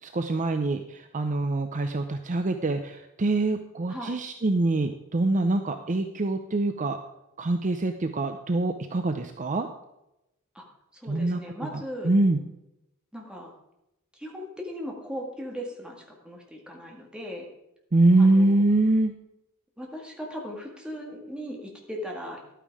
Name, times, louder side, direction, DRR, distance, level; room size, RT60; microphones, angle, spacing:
voice 1, 0.0-7.0 7.4-9.7 11.1-11.4 11.7-12.4 17.9-19.1, right 2 dB, 35° right, 7 dB, 0.6 m, -24 dB
voice 2, 10.9-12.1 13.1-13.5 14.1-17.5 18.2-18.7 19.8-22.5, equal, 5° right, 0 dB, 2.1 m, -38 dB
11.5 x 9.1 x 4.8 m, 0.89 s
head